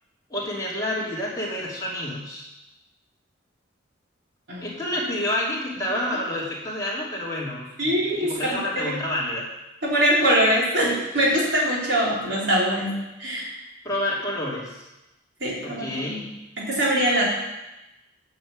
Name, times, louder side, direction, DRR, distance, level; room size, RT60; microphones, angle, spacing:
voice 1, 0.3-2.5 4.6-9.4 13.8-14.9 15.6-16.2, left 1 dB, 20° left, -6 dB, 2.9 m, -29 dB
voice 2, 7.8-8.3 8.8-8.9 9.8-13.5 15.4-16.2 16.6-17.2, equal, 70° right, -5 dB, 3.9 m, -23 dB
9.5 x 5.8 x 7.5 m, 0.98 s
head